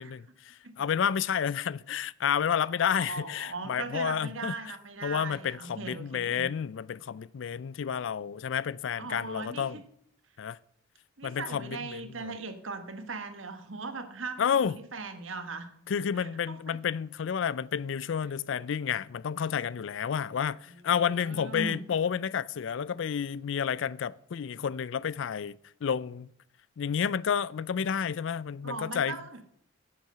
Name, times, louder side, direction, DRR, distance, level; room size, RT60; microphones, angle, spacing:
voice 1, 0.0-4.5 5.0-9.8 10.4-10.6 11.2-12.3 14.4-14.8 15.9-26.3 26.8-29.2, left 7 dB, 65° left, 0.4 m, -30 dB
voice 2, 2.9-6.5 9.0-9.8 11.2-15.7 16.2-16.8 20.7-21.8 28.6-29.4, right 3 dB, 80° right, 1.4 m, -39 dB
10.5 x 7.7 x 6.7 m
head